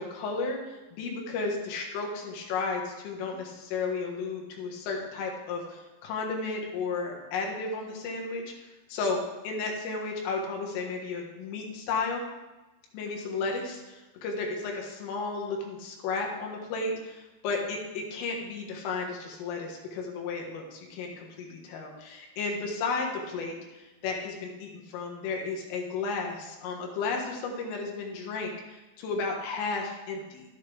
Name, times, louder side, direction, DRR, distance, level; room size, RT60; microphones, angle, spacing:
voice 1, 0.0-12.2 12.9-30.4, left 4 dB, 85° left, 1 dB, 4.1 m, -33 dB
13.0 x 9.3 x 3.5 m, 1.1 s
omnidirectional pair, 5.7 m